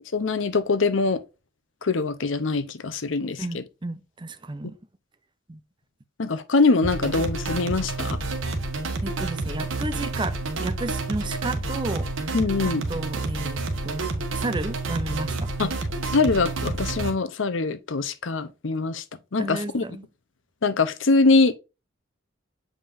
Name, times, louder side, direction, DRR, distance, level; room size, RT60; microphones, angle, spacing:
voice 1, 0.1-1.2 1.8-3.6 6.2-8.2 12.3-12.8 15.6-15.7 16.1-19.0 19.3-19.8 20.6-21.5, left 3 dB, 70° left, 0.8 m, -23 dB
voice 2, 3.4-4.7 5.5-5.6 9.0-12.4 12.9-15.5 19.4-20.0, right 2 dB, 25° right, 0.6 m, -33 dB
sound 1, 6.8-17.1, right 3 dB, 75° right, 1.4 m, -29 dB
7.5 x 5.1 x 2.6 m
head